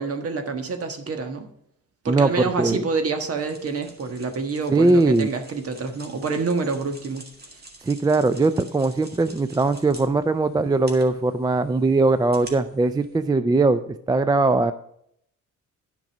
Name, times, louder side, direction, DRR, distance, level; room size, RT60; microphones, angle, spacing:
voice 1, 0.0-1.5 2.0-7.2, right 4 dB, 50° right, 7 dB, 1.5 m, -27 dB
voice 2, 2.1-2.8 4.7-5.3 7.8-14.7, right 3 dB, 15° right, 12 dB, 0.3 m, -20 dB
sound 1, 3.4-13.3, right 2 dB, 30° right, 2.0 m, -48 dB
10.5 x 5.3 x 6.0 m, 0.71 s
cardioid pair, 120°, 31 cm